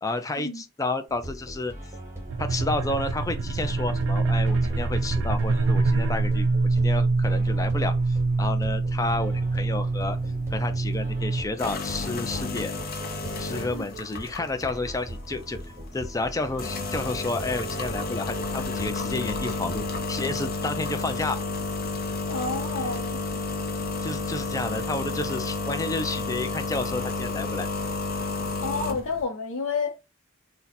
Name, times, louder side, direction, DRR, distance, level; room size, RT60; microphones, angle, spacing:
voice 1, 0.0-1.7 2.4-10.2 10.5-12.7 13.4-15.6 15.9-21.4 22.8-22.9 24.0-27.7, left 2 dB, 15° left, 0.4 m, -31 dB
sound 1, 1.1-20.0, right 1 dB, 10° right, 0.9 m, -41 dB
sound 2, 2.3-11.4, right 3 dB, 70° right, 0.3 m, -25 dB
sound 3, 10.1-29.2, left 3 dB, 50° left, 0.7 m, -32 dB
voice 2, 22.3-23.2 28.6-30.0, left 4 dB, 85° left, 0.6 m, -30 dB
2.7 x 2.1 x 4.0 m
head